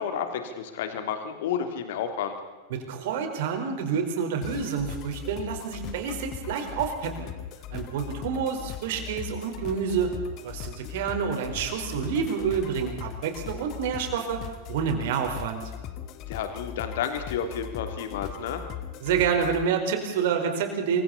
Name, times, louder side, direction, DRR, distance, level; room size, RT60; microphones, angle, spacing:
voice 1, 0.0-2.4 16.3-18.6, left 8 dB, 55° left, 6 dB, 3.1 m, -31 dB
voice 2, 2.7-7.3 7.7-10.1 10.4-14.4 14.7-15.7 19.0-21.0, right 7 dB, 55° right, 4 dB, 4.7 m, -28 dB
sound 1, 4.4-19.6, left 10 dB, 40° left, 1.8 m, -39 dB
28.5 x 24.0 x 4.3 m, 1.2 s
figure-of-eight pair, 90°, 0 cm